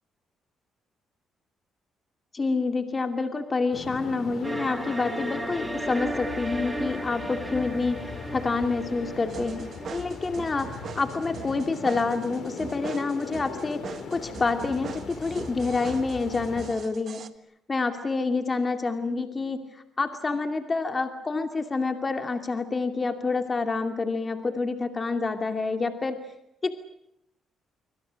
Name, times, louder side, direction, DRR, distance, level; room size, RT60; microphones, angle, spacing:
voice 1, 2.3-8.0 8.3-17.2 17.7-19.6 20.0-26.2 26.6-26.7, left 3 dB, 30° left, 6 dB, 2.5 m, -28 dB
sound 1, 3.7-16.7, left 5 dB, 65° left, 4.8 m, -39 dB
sound 2, 4.4-11.4, right 2 dB, 20° right, 2.8 m, -36 dB
sound 3, 9.3-17.3, right 7 dB, 55° right, 1.5 m, -42 dB
26.0 x 25.0 x 6.4 m, 0.80 s
cardioid pair, 90°, 0 cm